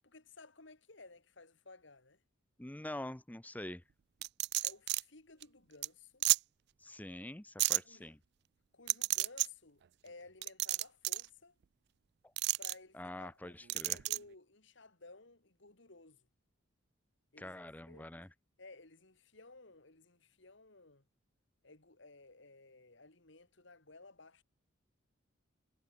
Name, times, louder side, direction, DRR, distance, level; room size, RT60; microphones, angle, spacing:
voice 1, 0.0-2.2 4.6-6.2 7.8-8.1 8.7-11.6 12.6-16.3 17.3-18.1 18.6-21.1 21.6-24.4, left 3 dB, 65° left, 2.5 m, -57 dB
voice 2, 2.6-3.8 6.8-8.2 12.9-14.0 17.4-18.3, left 1 dB, 10° left, 0.6 m, -45 dB
sound 1, 4.2-5.0 5.4-5.5 5.8-5.9 6.2-6.4 7.6-7.8 8.9-9.5 10.4-11.3 12.4-12.7 13.7-14.2, right 19 dB, 55° right, 0.4 m, -31 dB
head